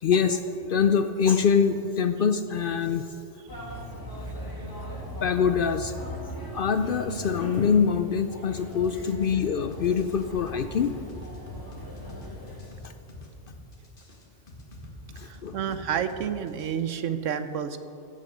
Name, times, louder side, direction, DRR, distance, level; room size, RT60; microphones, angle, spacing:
voice 1, 0.0-3.1 5.2-5.9 6.5-10.9 12.8-12.9 15.2-15.6, left 6 dB, 60° left, 9 dB, 0.6 m, -24 dB
sound 1, 3.5-12.7, equal, 15° left, 2.0 m, -39 dB
sound 2, 8.7-16.7, left 1 dB, 45° left, 1.9 m, -46 dB
voice 2, 15.2-17.8, right 8 dB, 80° right, 11 dB, 1.1 m, -30 dB
15.5 x 7.5 x 6.6 m, 2.8 s
omnidirectional pair, 1.3 m